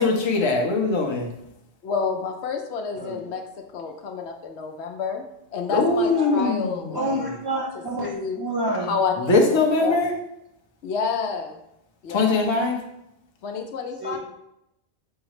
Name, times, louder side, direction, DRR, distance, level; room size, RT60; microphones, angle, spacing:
voice 1, 0.0-1.3 5.7-7.0 9.2-10.1 12.1-12.8, left 3 dB, 30° left, 1 dB, 0.6 m, -21 dB
voice 2, 1.8-3.4 3.7-5.2 5.5-7.3 8.0-8.4 8.8-10.0 10.8-11.6 12.0-12.6 13.4-14.2, left 5 dB, 75° left, 4 dB, 0.9 m, -29 dB
voice 3, 2.9-3.4 6.1-6.4 6.9-8.9 14.0-14.2, right 1 dB, 30° right, -3 dB, 0.4 m, -29 dB
5.5 x 2.0 x 4.8 m, 0.83 s
omnidirectional pair, 1.2 m